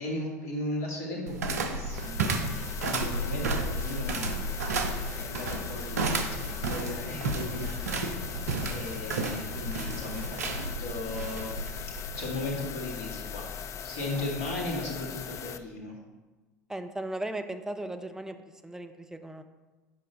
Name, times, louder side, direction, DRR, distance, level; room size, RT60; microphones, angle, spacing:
voice 1, 0.0-2.2 2.8-4.4 5.2-11.7 12.1-13.4 13.8-15.9, left 2 dB, 65° left, -3 dB, 1.8 m, -37 dB
sound 1, 1.3-12.5, right 2 dB, 75° right, 0.7 m, -32 dB
sound 2, 1.9-15.6, left 8 dB, 35° left, 0.4 m, -40 dB
voice 2, 16.7-18.4 18.6-19.4, right 1 dB, 5° right, 7 dB, 0.6 m, -36 dB
7.6 x 5.3 x 4.1 m, 1.2 s
figure-of-eight pair, 70°, 9 cm